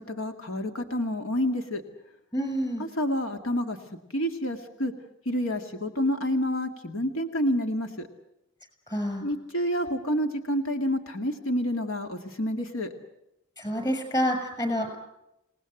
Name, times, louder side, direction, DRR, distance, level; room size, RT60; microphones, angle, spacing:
voice 1, 0.0-1.8 2.8-3.8 4.1-4.9 5.3-8.1 9.2-12.9, equal, 80° left, 6 dB, 2.2 m, -28 dB
voice 2, 2.3-2.8 8.9-9.2 13.6-15.0, equal, 20° left, 7 dB, 6.4 m, -28 dB
28.0 x 19.0 x 7.9 m, 0.86 s
head